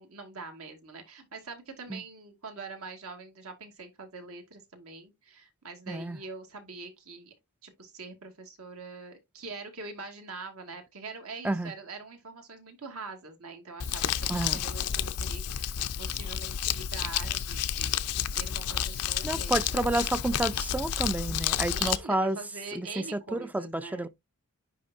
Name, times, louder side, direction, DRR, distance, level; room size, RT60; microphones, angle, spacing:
voice 1, 0.0-7.3 7.6-19.8 21.7-24.1, right 4 dB, 70° right, 2.0 m, -44 dB
voice 2, 5.9-6.2 11.4-11.7 14.3-14.6 19.2-22.4 22.8-22.9 23.5-24.1, right 2 dB, 5° right, 0.4 m, -29 dB
Crumpling crinkling, 13.8-22.0, left 9 dB, 85° left, 0.6 m, -30 dB
10.5 x 3.4 x 2.7 m
head